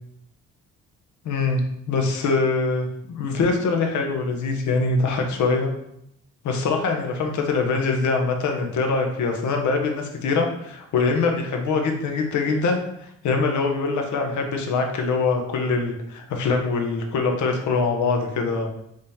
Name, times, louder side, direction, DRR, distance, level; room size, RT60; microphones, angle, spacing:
voice 1, 1.2-2.9 3.2-5.7 6.4-12.8 13.2-18.7, left 4 dB, 70° left, 3 dB, 0.9 m, -23 dB
5.0 x 2.8 x 3.5 m, 0.76 s
cardioid pair, 90°, 30 cm